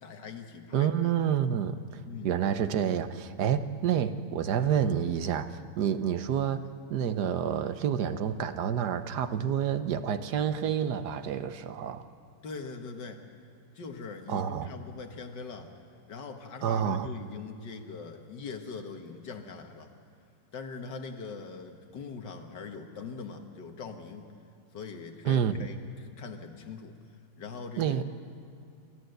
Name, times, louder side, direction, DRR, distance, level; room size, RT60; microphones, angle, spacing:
voice 1, 0.0-1.2 2.1-2.3 12.4-13.2 13.8-15.8 16.1-19.9 20.5-24.2 24.7-27.0 27.4-28.0, left 5 dB, 75° left, 5 dB, 2.1 m, -42 dB
voice 2, 0.7-1.8 2.2-6.6 6.9-12.0 14.3-14.7 16.6-17.1 25.2-25.7 27.8-28.0, right 8 dB, 70° right, 10 dB, 1.4 m, -28 dB
28.0 x 14.0 x 7.9 m, 2.5 s
omnidirectional pair, 1.9 m